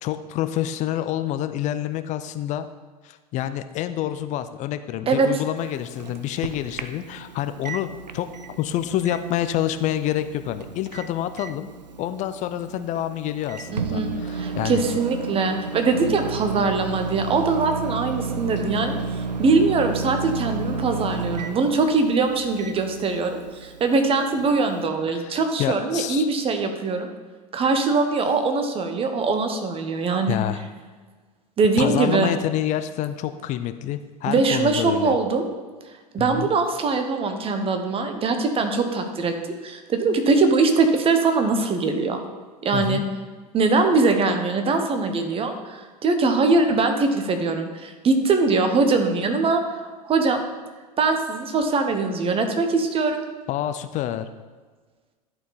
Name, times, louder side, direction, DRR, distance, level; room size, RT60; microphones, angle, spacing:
voice 1, 0.0-2.7 3.0-7.9 8.1-8.3 8.6-11.7 12.0-14.8 25.1-26.3 30.3-30.6 31.8-35.2 36.2-36.5 42.7-43.0 53.5-54.3, left 12 dB, 35° left, 11 dB, 0.4 m, -27 dB
Microwave oven, 5.6-24.9, right 4 dB, 90° right, 0.5 m, -33 dB
voice 2, 13.7-27.1 27.5-30.4 31.6-32.3 34.3-35.5 36.1-39.3 39.6-42.2 42.6-43.0 43.5-50.4 51.0-53.3, right 3 dB, 25° right, 6 dB, 1.0 m, -22 dB
11.0 x 4.5 x 4.0 m, 1.4 s
figure-of-eight pair, 80°, 21 cm